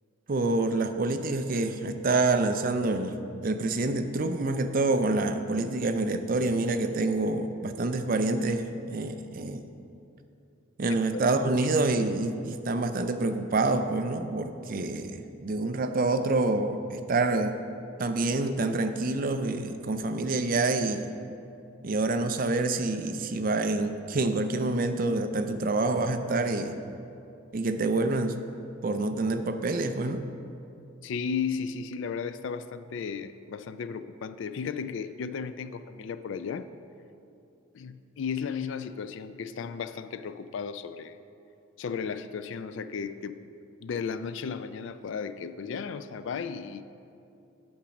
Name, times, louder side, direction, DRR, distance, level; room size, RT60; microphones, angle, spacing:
voice 1, 0.3-3.2 3.4-9.6 10.8-17.6 18.0-21.1 21.8-26.8 27.5-28.4 28.8-30.2, right 2 dB, 40° right, 8 dB, 0.4 m, -27 dB
voice 2, 31.0-36.7 37.7-41.2 41.8-43.4 43.8-46.8, left 6 dB, 60° left, 12 dB, 0.3 m, -34 dB
8.7 x 5.2 x 5.9 m, 2.6 s
head